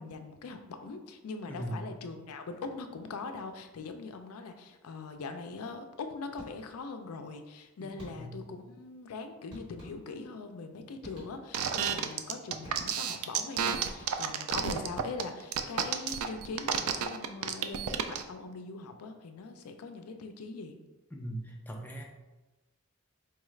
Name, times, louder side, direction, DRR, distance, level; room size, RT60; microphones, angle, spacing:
voice 1, 0.0-20.8, left 4 dB, 85° left, 7 dB, 0.4 m, -42 dB
voice 2, 1.5-1.9 7.8-8.5 21.1-22.0, right 1 dB, 10° left, 0 dB, 0.4 m, -40 dB
sound 1, 6.4-6.9 8.0-8.5 9.5-10.4 11.0-11.8 12.6-13.3 13.9-14.5, equal, 20° right, 1.4 m, -51 dB
sound 2, 11.5-18.2, right 8 dB, 80° right, 0.3 m, -30 dB
4.6 x 2.3 x 3.1 m, 1.1 s
head